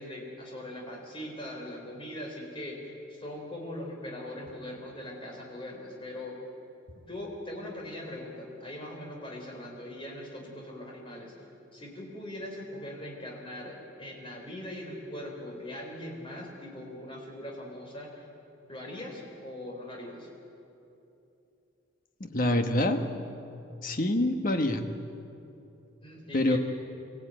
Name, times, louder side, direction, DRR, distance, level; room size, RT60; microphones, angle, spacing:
voice 1, 0.0-6.4 7.1-11.3 11.7-18.3 18.7-20.3 26.0-26.6, left 1 dB, 25° left, -1 dB, 4.4 m, -41 dB
voice 2, 22.2-23.1 23.8-24.9 26.3-26.6, left 1 dB, 45° left, 6 dB, 1.5 m, -26 dB
25.0 x 15.5 x 9.2 m, 2.8 s
head